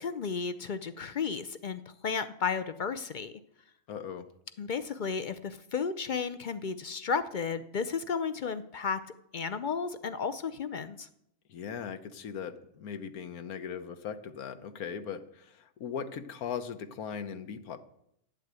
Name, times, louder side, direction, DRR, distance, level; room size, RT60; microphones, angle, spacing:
voice 1, 0.0-3.3 4.6-9.0 9.3-11.1, left 5 dB, 65° left, 12 dB, 0.4 m, -33 dB
voice 2, 3.9-4.3 11.5-17.8, left 7 dB, 80° left, 10 dB, 1.4 m, -39 dB
11.0 x 8.3 x 8.2 m, 0.76 s
omnidirectional pair, 1.5 m